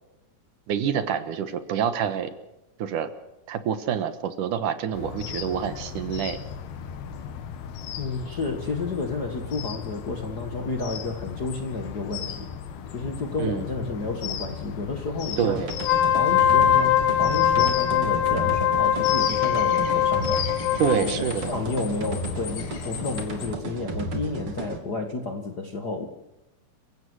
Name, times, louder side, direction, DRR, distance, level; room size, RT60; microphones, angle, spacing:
voice 1, 0.7-2.3 2.8-3.1 3.5-6.4 13.4-13.7 15.4-15.7 20.8-21.6, right 8 dB, 65° right, 11 dB, 2.6 m, -27 dB
sound 1, 4.9-23.6, left 8 dB, 85° left, 3.5 m, -36 dB
voice 2, 8.0-12.5 12.9-15.6 16.1-20.5 20.9-26.1, left 3 dB, 45° left, 4 dB, 1.3 m, -31 dB
sound 2, 15.5-24.8, right 3 dB, 40° right, 3.1 m, -34 dB
Wind instrument woodwind instrument, 15.8-21.0, left 10 dB, 65° left, 2.3 m, -22 dB
30.0 x 16.0 x 6.3 m, 0.93 s
omnidirectional pair, 4.2 m